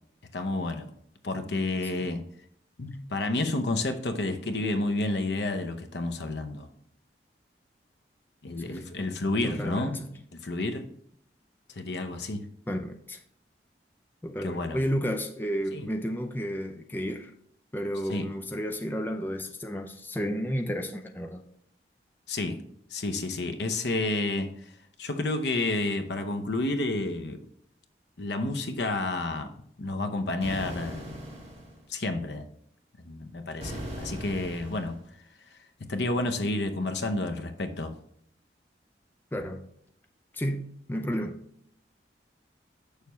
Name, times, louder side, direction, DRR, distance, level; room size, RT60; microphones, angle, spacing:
voice 1, 0.3-0.9 1.2-2.2 2.8-6.7 8.4-10.0 10.4-10.8 11.8-12.4 14.4-14.8 15.7-15.9 18.1-18.3 22.3-22.6 22.9-24.5 25.0-27.5 28.2-29.5 29.8-31.3 31.9-32.4 33.0-35.0 35.9-37.9, left 2 dB, 75° left, 7 dB, 0.8 m, -30 dB
voice 2, 9.4-10.2 12.7-13.2 14.2-17.3 17.7-21.4 39.3-39.6 40.3-41.4, equal, 10° left, 4 dB, 0.4 m, -32 dB
sound 1, 30.4-31.8 33.6-35.0, right 1 dB, 35° right, 1.8 m, -39 dB
6.8 x 6.5 x 3.1 m, 0.69 s
head